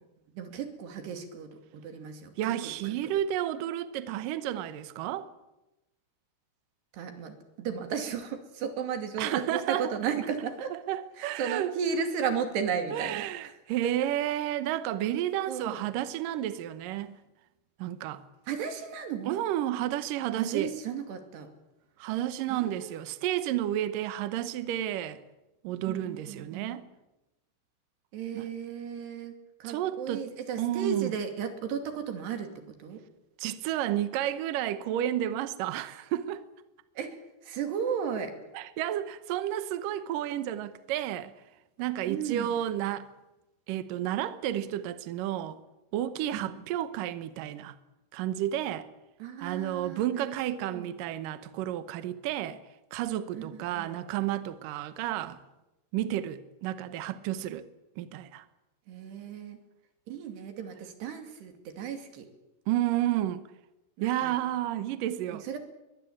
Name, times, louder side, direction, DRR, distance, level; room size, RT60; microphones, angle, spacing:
voice 1, 0.3-3.0 6.9-10.8 11.2-13.6 13.8-13.9 15.5-15.8 18.5-19.4 20.4-21.5 22.5-23.0 25.9-26.8 28.1-33.0 37.0-38.4 42.1-42.6 46.3-46.6 49.2-50.9 53.3-54.0 55.2-55.3 58.9-59.6 60.1-62.3 64.0-64.3 65.3-65.6, right 7 dB, 60° right, 4.5 m, -35 dB
voice 2, 2.4-5.3 9.2-9.9 10.9-11.7 12.9-17.1 17.8-18.2 19.3-20.7 22.0-25.2 25.6-26.8 28.3-28.4 29.6-30.3 30.6-31.1 33.4-36.4 38.5-41.3 41.8-43.1 43.7-45.6 45.9-47.8 48.1-48.9 49.4-52.6 52.9-55.4 55.9-57.7 58.0-58.4 62.7-63.4 64.0-65.4, right 12 dB, 80° right, 1.9 m, -31 dB
23.0 x 20.5 x 8.7 m
omnidirectional pair, 5.5 m